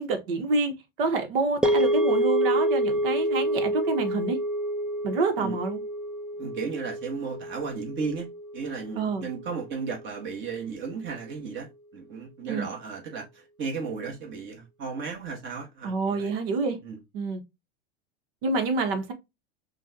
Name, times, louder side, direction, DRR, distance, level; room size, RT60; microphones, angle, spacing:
voice 1, 0.0-4.4 5.0-5.8 9.0-9.3 12.5-12.7 15.8-16.8 17.1-17.4 18.4-19.1, right 3 dB, 70° right, 1.4 m, -27 dB
sound 1, 1.6-9.9, right 1 dB, 5° right, 0.4 m, -28 dB
voice 2, 6.4-16.3 16.8-17.0, right 5 dB, 40° right, 1.7 m, -35 dB
6.0 x 2.6 x 2.9 m
hypercardioid pair, 105°, 29 cm